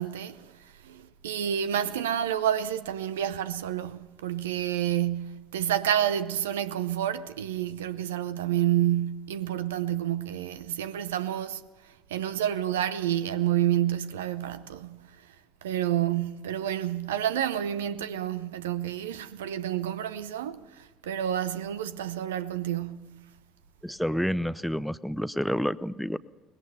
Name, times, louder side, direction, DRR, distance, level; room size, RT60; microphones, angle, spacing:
voice 1, 0.0-15.4 15.6-23.3, right 11 dB, 70° right, 0.8 m, -29 dB
voice 2, 23.8-26.2, equal, ahead, 0.6 m, -29 dB
23.5 x 20.5 x 5.7 m
figure-of-eight pair, 60°, 0 cm